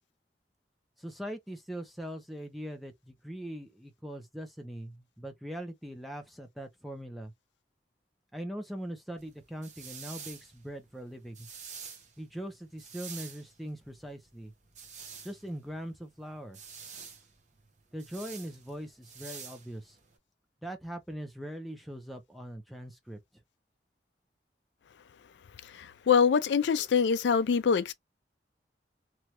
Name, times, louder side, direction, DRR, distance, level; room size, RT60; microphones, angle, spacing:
voice 1, 1.0-7.3 8.3-11.5 12.2-14.5 15.2-16.6 17.9-20.0 20.6-23.2, equal, ahead, 0.5 m, -41 dB
sound 1, 9.2-20.2, right 6 dB, 40° right, 0.9 m, -48 dB
voice 2, 25.8-27.9, left 6 dB, 75° left, 0.4 m, -24 dB
3.1 x 2.2 x 2.8 m
head